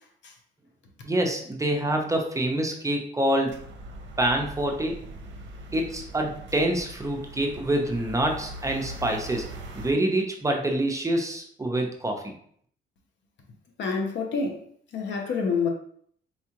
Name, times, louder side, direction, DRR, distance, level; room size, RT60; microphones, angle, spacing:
voice 1, 1.0-3.6 4.2-4.9 5.7-9.4 9.8-12.3, right 1 dB, 15° right, 0.6 m, -26 dB
sound 1, 3.5-9.9, right 1 dB, 65° right, 0.6 m, -41 dB
voice 2, 13.8-14.6 14.9-15.7, left 5 dB, 65° left, 0.8 m, -27 dB
4.3 x 2.4 x 2.9 m
cardioid pair, 90°, 20 cm